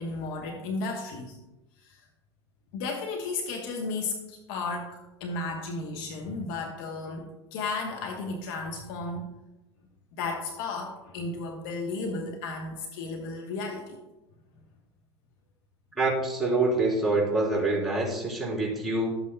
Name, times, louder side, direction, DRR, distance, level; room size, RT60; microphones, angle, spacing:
voice 1, 0.0-1.4 1.8-2.0 2.7-9.2 10.2-14.0, left 3 dB, 50° left, 2 dB, 1.1 m, -34 dB
voice 2, 16.0-19.1, right 2 dB, ahead, -4 dB, 3.4 m, -26 dB
12.5 x 8.3 x 2.2 m, 0.99 s
figure-of-eight pair, 75°, 14 cm